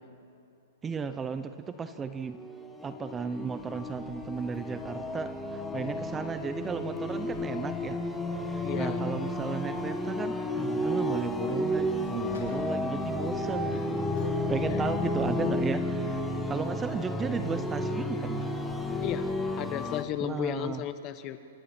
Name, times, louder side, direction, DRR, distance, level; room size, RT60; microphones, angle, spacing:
voice 1, 0.8-2.4 2.8-8.0 8.4-14.1 14.5-18.5 20.2-20.8, right 5 dB, 15° right, 11 dB, 0.8 m, -35 dB
sound 1, 1.9-20.0, left 1 dB, 5° left, 1.7 m, -32 dB
Vehicle / Accelerating revving vroom / Squeak, 3.4-20.3, left 3 dB, 90° left, 5.1 m, -48 dB
voice 2, 8.6-9.0 14.7-14.8 19.0-21.4, left 11 dB, 30° left, 11 dB, 1.2 m, -34 dB
28.5 x 24.0 x 4.5 m, 2.7 s
hypercardioid pair, 145°, 0 cm